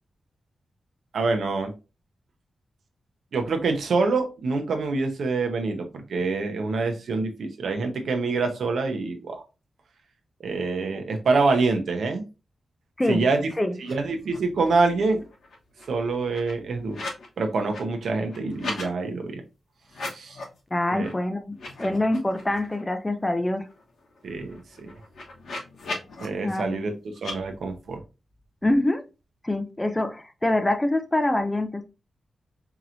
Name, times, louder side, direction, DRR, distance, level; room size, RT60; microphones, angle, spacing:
voice 1, 1.1-1.7 3.3-9.4 10.4-12.2 13.1-13.5 13.8-15.2 15.9-17.0 17.4-19.4 20.1-20.4 20.9-21.1 24.2-24.9 26.2-26.9 27.2-28.0, right 3 dB, 70° right, 0.8 m, -26 dB
sound 1, 13.8-13.9 14.2-14.9 15.2-17.3 17.6-18.9 19.8-20.6 21.0-21.1 21.5-22.8 23.2-23.3 23.6-26.3 27.2-27.4, left 3 dB, 80° left, 1.0 m, -38 dB
voice 2, 20.7-23.7 26.4-26.8 28.6-29.0 29.4-31.8, left 1 dB, 15° left, 0.4 m, -25 dB
4.6 x 3.0 x 2.5 m
wide cardioid pair, 170°, 0 cm